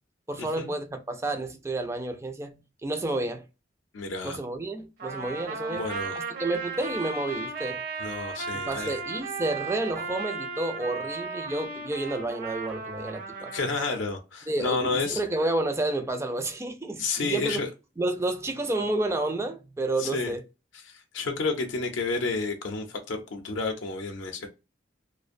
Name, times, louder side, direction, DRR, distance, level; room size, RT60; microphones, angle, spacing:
voice 1, 0.3-3.4 4.2-5.8 6.4-7.8 8.5-13.5 14.5-17.6 18.0-20.4, right 2 dB, 15° right, 0.3 m, -30 dB
voice 2, 3.9-4.4 5.7-6.2 8.0-9.0 13.5-15.2 17.0-17.7 20.0-20.3 20.8-24.5, left 3 dB, 70° left, 0.5 m, -30 dB
Trumpet, 5.0-14.0, right 4 dB, 50° right, 0.7 m, -35 dB
2.5 x 2.1 x 2.5 m
head